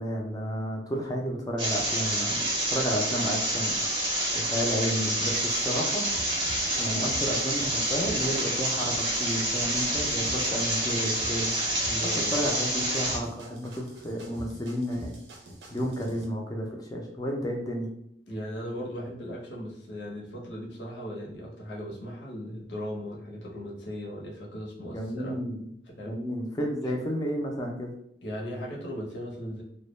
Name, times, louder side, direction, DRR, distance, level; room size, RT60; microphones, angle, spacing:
voice 1, 0.0-3.8 4.3-6.1 6.8-11.5 12.0-15.2 15.7-17.9 24.8-25.7 26.0-27.9, equal, 20° left, 1 dB, 0.4 m, -31 dB
sound 1, 1.6-13.2, right 1 dB, 25° right, 0.6 m, -28 dB
sound 2, 6.1-16.2, right 1 dB, 70° right, 0.5 m, -45 dB
voice 2, 11.9-12.4 18.3-25.4 25.9-26.2 28.2-29.6, equal, 75° left, -3 dB, 0.7 m, -37 dB
2.2 x 2.0 x 3.0 m, 0.72 s
head